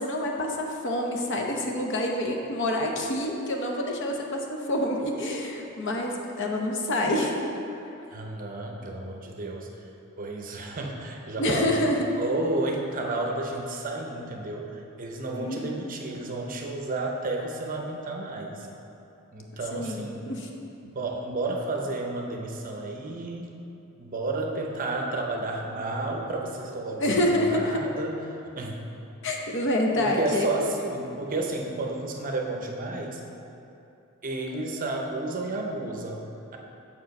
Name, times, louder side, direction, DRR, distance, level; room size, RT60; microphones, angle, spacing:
voice 1, 0.0-7.3 11.4-12.1 15.3-15.7 19.7-20.5 27.0-27.8 29.2-30.5, left 1 dB, 55° left, 1 dB, 0.8 m, -27 dB
voice 2, 8.1-9.7 10.2-11.8 12.2-18.7 19.3-20.3 20.8-23.5 24.0-28.1 28.5-28.8 30.0-33.2 34.2-36.6, right 2 dB, 40° right, 0 dB, 0.7 m, -32 dB
6.9 x 4.9 x 5.3 m, 2.9 s
head